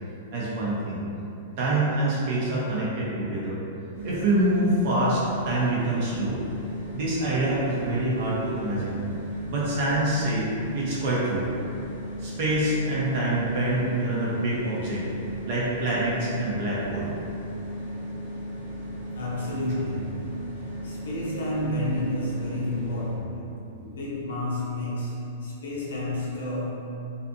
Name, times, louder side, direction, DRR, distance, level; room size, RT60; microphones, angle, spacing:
voice 1, 0.3-1.0 1.6-3.6 4.0-6.4 6.9-9.0 9.5-11.5 12.2-15.0 15.5-17.1, right 1 dB, 55° right, -6 dB, 0.6 m, -26 dB
sound 1, 3.9-23.2, equal, 90° right, 0.9 m, -36 dB
voice 2, 19.1-20.3 20.8-23.5 23.8-26.9, left 1 dB, 85° left, -5 dB, 0.7 m, -30 dB
2.5 x 2.4 x 2.6 m, 2.7 s
hypercardioid pair, 125°, 0 cm